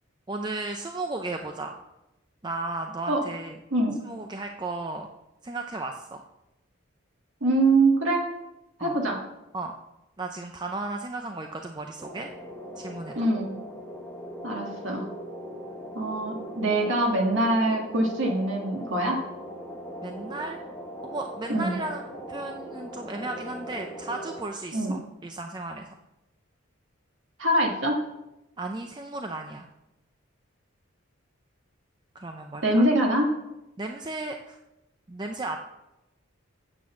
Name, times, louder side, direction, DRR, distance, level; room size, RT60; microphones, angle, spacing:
voice 1, 0.3-1.8 2.4-3.6 4.0-5.1 5.4-6.2 8.8-9.0 9.5-9.7 10.2-12.3 12.8-13.2 20.0-20.6 21.0-25.9 28.6-29.7 32.1-32.9 33.8-34.6 35.1-35.6, right 2 dB, 20° right, 4 dB, 0.5 m, -35 dB
voice 2, 7.4-8.3 8.8-9.2 13.1-13.5 14.4-15.1 15.9-19.2 21.5-21.7 24.7-25.0 27.4-28.0 32.6-33.3, right 1 dB, 70° right, 0 dB, 1.6 m, -24 dB
sound 1, 12.0-24.4, equal, 5° left, 1.3 m, -40 dB
8.8 x 6.1 x 7.0 m, 0.94 s
head